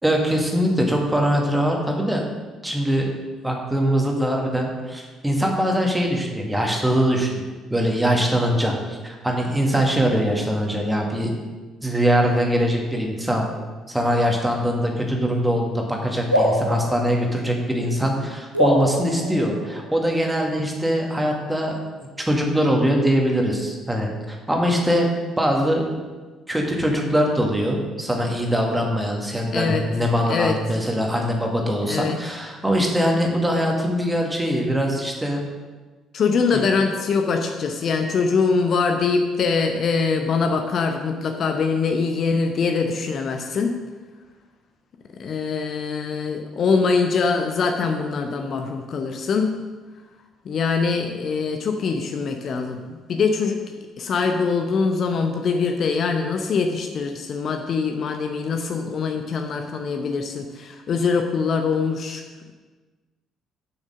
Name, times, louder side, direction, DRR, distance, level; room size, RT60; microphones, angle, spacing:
voice 1, 0.0-2.2 2.6-3.1 3.4-7.4 7.7-11.3 11.8-13.5 13.9-21.8 22.2-25.1 25.4-25.8 26.5-35.4 36.5-36.7, equal, 10° right, 0 dB, 1.9 m, -22 dB
sound 1, 16.3-18.0 18.5-20.2, equal, 90° right, 1.0 m, -24 dB
voice 2, 29.5-29.8 30.3-30.6 31.8-32.2 36.1-43.8 45.2-49.6 50.4-52.8 53.1-53.6 54.0-62.2, left 5 dB, 45° left, 5 dB, 0.7 m, -23 dB
7.4 x 6.3 x 6.4 m, 1.3 s
figure-of-eight pair, 50°, 0 cm